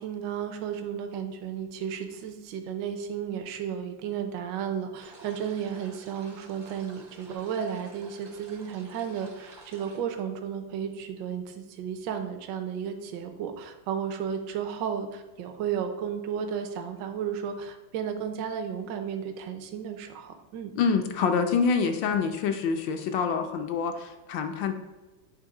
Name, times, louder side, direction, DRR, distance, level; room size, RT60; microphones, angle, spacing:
voice 1, 0.0-20.7, right 8 dB, 70° right, 6 dB, 1.3 m, -33 dB
sound 1, 5.0-10.0, right 3 dB, 45° right, 0.5 m, -50 dB
voice 2, 20.8-24.7, left 5 dB, 75° left, 5 dB, 1.3 m, -26 dB
9.0 x 3.5 x 4.8 m, 1.2 s
omnidirectional pair, 2.1 m